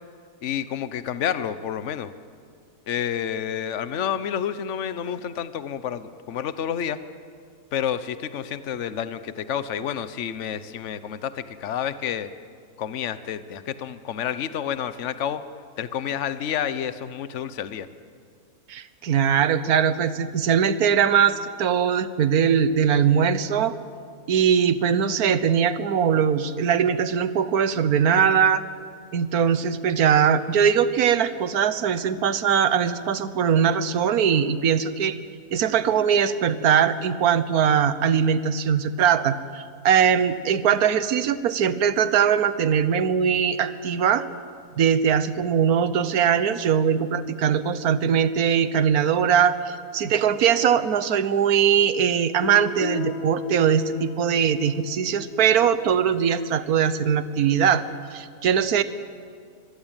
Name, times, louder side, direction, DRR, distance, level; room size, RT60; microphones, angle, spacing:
voice 1, 0.4-2.1 2.9-7.0 7.7-12.3 12.8-15.4 15.8-17.9, left 9 dB, 55° left, 13 dB, 1.2 m, -29 dB
voice 2, 18.7-23.8 24.3-28.6 29.1-35.2 35.5-44.3 44.8-57.8 58.1-58.8, right 8 dB, 70° right, 13 dB, 1.5 m, -21 dB
Guitar, 52.4-57.1, left 8 dB, 70° left, 1.6 m, -36 dB
24.5 x 23.0 x 9.0 m, 2.2 s
omnidirectional pair, 1.6 m